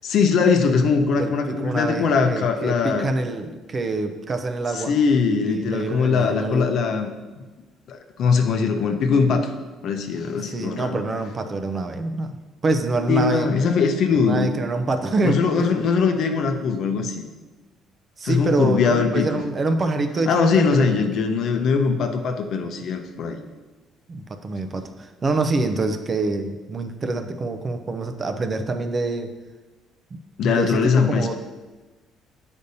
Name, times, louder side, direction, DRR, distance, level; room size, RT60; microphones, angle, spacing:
voice 1, 0.0-3.1 4.7-7.1 7.9-9.5 9.8-11.0 13.1-14.5 15.2-17.3 18.2-19.3 20.3-23.4 30.4-31.3, left 5 dB, 60° left, 5 dB, 0.6 m, -21 dB
voice 2, 1.2-4.9 5.4-6.8 10.4-12.4 12.6-13.5 14.1-15.8 18.2-20.9 24.1-29.3 30.1-31.3, right 3 dB, 30° right, 7 dB, 0.5 m, -26 dB
8.1 x 5.2 x 2.7 m, 1.2 s
cardioid pair, 115°, 0 cm